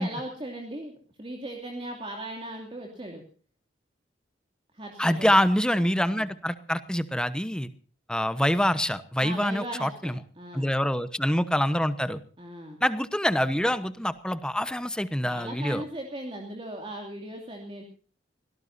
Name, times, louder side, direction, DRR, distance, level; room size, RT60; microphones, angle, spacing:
voice 1, 0.0-3.2 4.7-5.3 6.1-6.3 9.2-10.7 12.4-12.8 15.2-17.8, right 1 dB, 30° right, 2 dB, 2.7 m, -38 dB
voice 2, 5.0-7.7 8.1-10.2 10.5-12.2 12.8-15.8, equal, 5° left, 12 dB, 1.1 m, -25 dB
25.0 x 17.5 x 2.7 m, 0.41 s
head